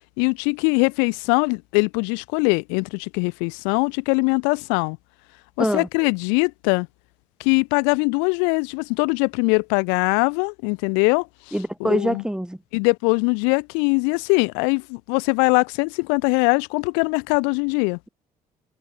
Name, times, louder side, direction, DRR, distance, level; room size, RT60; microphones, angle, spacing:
voice 1, 0.2-5.0 5.6-6.9 7.4-11.5 11.8-12.2 12.7-18.0, left 40 dB or more, 70° left, 1.8 m, -22 dB
voice 2, 11.5-12.6, equal, 5° right, 2.4 m, -24 dB
figure-of-eight pair, 50°, 19 cm